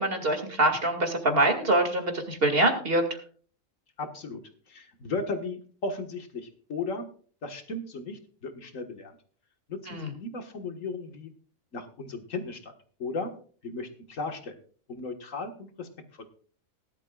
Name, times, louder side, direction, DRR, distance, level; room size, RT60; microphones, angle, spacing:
voice 1, 0.0-3.0 9.9-10.1, right 1 dB, 45° right, 5 dB, 2.4 m, -24 dB
voice 2, 4.0-4.4 4.7-7.1 7.4-9.2 9.7-11.3 11.7-12.7 13.0-13.3 13.6-14.6 14.9-15.9, left 3 dB, 70° left, 6 dB, 2.0 m, -35 dB
18.5 x 12.0 x 2.4 m, 0.44 s
omnidirectional pair, 1.4 m